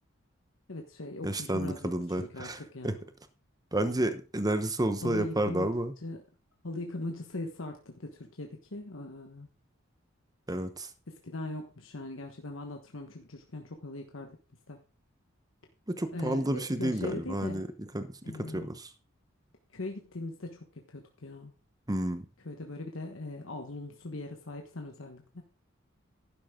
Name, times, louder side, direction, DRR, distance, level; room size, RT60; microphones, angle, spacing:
voice 1, 0.7-3.0 3.7-4.1 5.0-5.7 6.0-6.2 6.6-9.5 11.1-14.4 14.7-14.8 16.1-17.6 18.2-18.7 19.7-21.5 22.4-25.4, left 2 dB, 75° left, 4 dB, 1.3 m, -40 dB
voice 2, 1.2-2.9 3.7-5.9 10.5-10.9 15.9-18.9 21.9-22.2, right 1 dB, 20° right, 10 dB, 1.0 m, -31 dB
12.0 x 10.5 x 3.7 m, 0.34 s
head